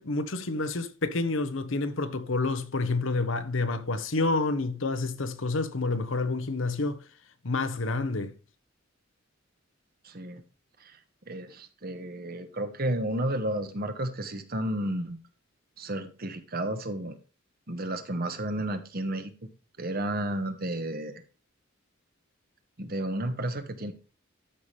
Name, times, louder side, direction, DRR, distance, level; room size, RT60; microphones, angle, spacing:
voice 1, 0.0-7.0 7.4-8.3, left 3 dB, 75° left, 1.0 m, -29 dB
voice 2, 10.0-10.4 10.8-11.0 11.3-15.2 15.8-17.2 17.7-19.3 19.8-21.2 22.8-23.9, right 1 dB, 45° right, 1.2 m, -32 dB
12.5 x 5.7 x 3.3 m
head